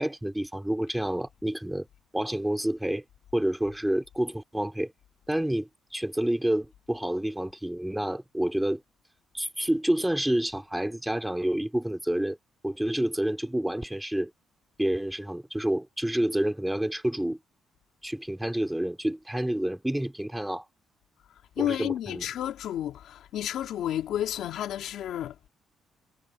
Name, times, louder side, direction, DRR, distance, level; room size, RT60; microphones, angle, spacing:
voice 1, 0.0-1.9 2.1-3.0 3.3-4.9 5.3-8.8 9.3-12.4 12.6-14.3 14.8-17.4 18.0-20.7 21.6-22.3, right 1 dB, 5° right, 4.5 m, -28 dB
voice 2, 21.6-25.5, left 11 dB, 75° left, 3.1 m, -31 dB
cardioid pair, 90°, 0 cm